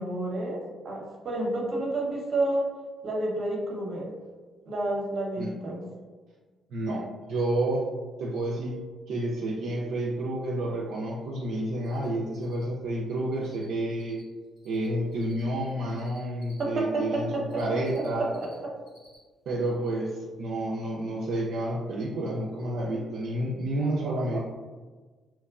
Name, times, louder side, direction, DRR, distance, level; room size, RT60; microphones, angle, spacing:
voice 1, 0.0-2.7 3.0-4.1 4.7-5.9 16.6-17.4 17.7-18.7 24.0-24.4, right 2 dB, 55° right, -1 dB, 0.7 m, -30 dB
voice 2, 6.7-7.8 8.2-8.8 9.1-14.2 14.6-18.3 19.5-24.4, right 1 dB, 75° right, -4 dB, 0.3 m, -30 dB
Cricket, 11.8-12.1 12.3-13.7 13.9-16.6 17.2-18.5 18.8-19.2 19.5-19.6 22.1-22.2 22.6-22.7 22.9-23.0, left 1 dB, 55° left, 1.4 m, -58 dB
2.8 x 2.1 x 2.3 m, 1.3 s
supercardioid pair, 65°, 0 cm